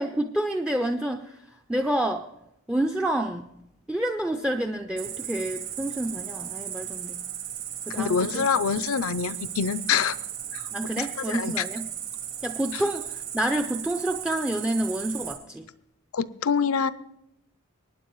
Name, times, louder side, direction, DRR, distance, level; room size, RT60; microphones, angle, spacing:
voice 1, 0.0-2.3 2.7-3.5 3.9-7.2 7.9-8.5 10.7-11.9 12.4-15.7, right 1 dB, 5° right, 6 dB, 0.4 m, -28 dB
Cricket, 5.0-15.3, right 10 dB, 75° right, 4.3 m, -36 dB
voice 2, 7.9-10.2 10.5-10.6 11.0-11.6 16.1-16.9, left 6 dB, 75° left, 16 dB, 0.5 m, -26 dB
24.0 x 9.6 x 3.1 m, 0.83 s
head